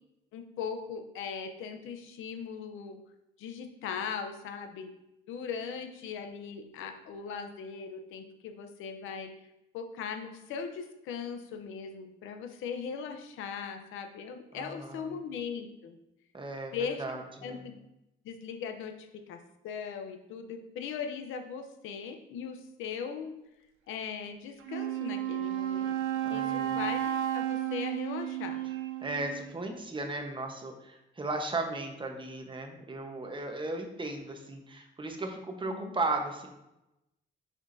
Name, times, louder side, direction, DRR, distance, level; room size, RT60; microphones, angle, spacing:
voice 1, 0.3-3.0 3.4-4.9 5.3-9.3 9.7-16.0 16.7-17.7 18.2-23.3 23.9-26.0 26.3-28.6 35.7-35.9, left 6 dB, 90° left, 7 dB, 0.8 m, -39 dB
voice 2, 14.5-15.1 16.3-16.7 17.0-17.6 26.2-26.8 29.0-36.5, right 2 dB, 25° right, 3 dB, 1.1 m, -36 dB
Wind instrument woodwind instrument, 24.6-29.5, right 11 dB, 90° right, 0.7 m, -33 dB
6.1 x 5.9 x 2.7 m, 0.91 s
cardioid pair, 90°, 20 cm